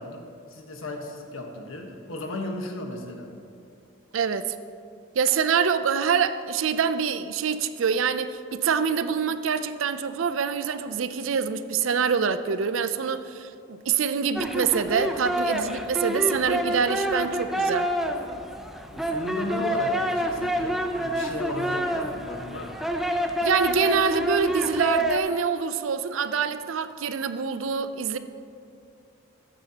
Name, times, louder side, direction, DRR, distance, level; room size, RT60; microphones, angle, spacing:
voice 1, 0.0-3.3 18.9-22.9, left 1 dB, 85° left, 2 dB, 1.3 m, -35 dB
voice 2, 4.1-4.6 5.2-17.9 23.4-28.2, right 6 dB, 75° right, 12 dB, 0.5 m, -25 dB
sound 1, 14.4-25.2, right 1 dB, ahead, 0.5 m, -27 dB
14.0 x 9.0 x 2.9 m, 2.6 s
head